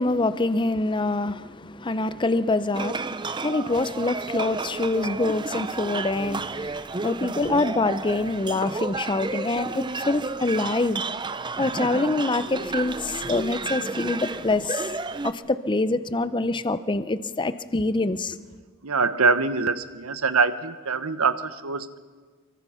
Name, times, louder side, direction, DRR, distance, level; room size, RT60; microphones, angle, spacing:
voice 1, 0.0-11.0 11.6-14.9 15.2-18.4, left 2 dB, 20° left, 0.6 m, -25 dB
sound 1, 2.7-15.3, right 3 dB, 20° right, 0.6 m, -32 dB
voice 2, 18.8-22.0, right 4 dB, 85° right, 1.1 m, -24 dB
24.5 x 23.5 x 5.7 m
head